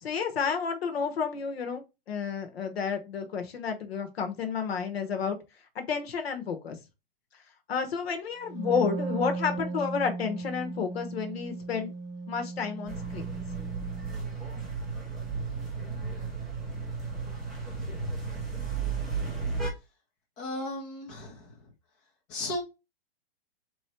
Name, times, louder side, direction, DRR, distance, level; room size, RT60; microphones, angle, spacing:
voice 1, 0.0-5.4 5.7-6.8 7.7-11.9 12.3-13.3, left 6 dB, 85° left, 1.2 m, -31 dB
Wind instrument woodwind instrument, 8.4-14.1, right 3 dB, 20° right, 0.7 m, -36 dB
sound 1, 12.9-19.7, right 4 dB, ahead, 0.3 m, -34 dB
voice 2, 20.4-21.7 22.3-22.6, left 1 dB, 25° left, 1.1 m, -35 dB
3.7 x 3.1 x 4.3 m
hypercardioid pair, 160°, 30 cm